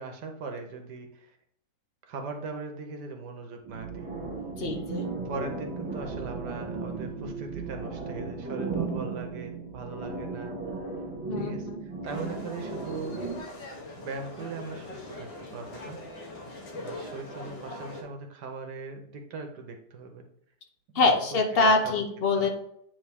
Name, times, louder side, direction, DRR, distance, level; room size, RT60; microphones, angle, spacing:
voice 1, 0.0-1.4 2.0-4.1 5.2-10.5 11.3-13.2 14.0-16.0 16.7-20.2 20.9-22.0 22.3-22.5, right 4 dB, 65° right, 4 dB, 1.3 m, -40 dB
sound 1, 3.6-13.4, right 3 dB, 15° right, 1.4 m, -35 dB
voice 2, 4.6-5.1 11.3-11.8 20.9-22.5, left 3 dB, 55° left, 4 dB, 0.6 m, -24 dB
sound 2, 12.0-18.0, left 1 dB, 85° left, 1.8 m, -42 dB
8.8 x 3.5 x 3.5 m, 0.72 s
omnidirectional pair, 2.0 m